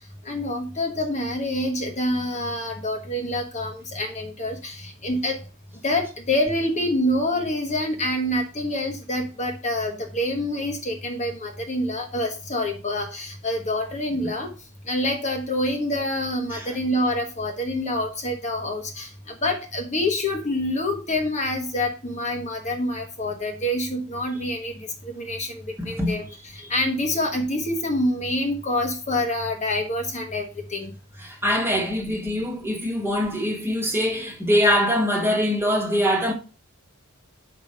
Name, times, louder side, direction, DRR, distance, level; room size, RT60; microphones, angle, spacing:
voice 1, 0.2-5.4 5.8-14.5 14.9-26.3 26.5-30.9, left 1 dB, 35° left, 1.3 m, -26 dB
voice 2, 25.8-26.2 26.6-26.7 31.2-36.3, equal, 10° right, 1.6 m, -23 dB
5.2 x 5.1 x 6.4 m
head